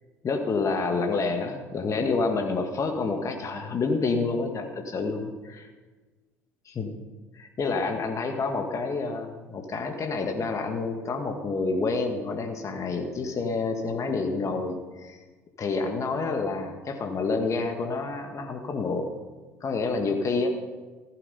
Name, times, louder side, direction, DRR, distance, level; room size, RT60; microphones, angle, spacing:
voice 1, 0.2-5.7 6.6-6.9 7.3-15.2 15.6-19.1 19.6-20.5, left 4 dB, 35° left, 3 dB, 1.8 m, -28 dB
15.0 x 11.5 x 5.5 m, 1.3 s
hypercardioid pair, 65°, 9 cm